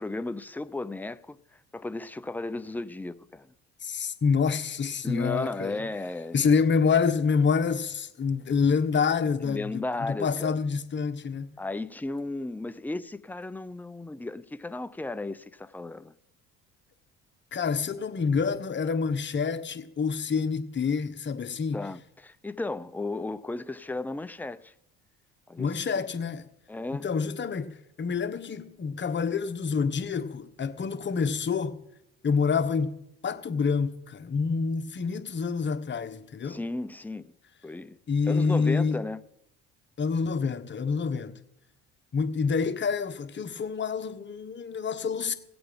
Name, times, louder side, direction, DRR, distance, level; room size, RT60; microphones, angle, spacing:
voice 1, 0.0-3.5 5.0-6.5 9.4-10.6 11.6-16.1 21.7-24.7 25.5-26.1 26.7-27.0 36.4-37.3 37.6-38.0 38.2-39.2, left 2 dB, 5° left, 0.6 m, -34 dB
voice 2, 3.8-5.8 6.3-11.5 17.5-21.8 25.6-26.5 26.9-31.8 32.2-36.6 38.1-39.0 40.0-41.4 42.1-45.3, left 5 dB, 35° left, 1.3 m, -27 dB
17.5 x 8.0 x 5.2 m
supercardioid pair, 70°, 31 cm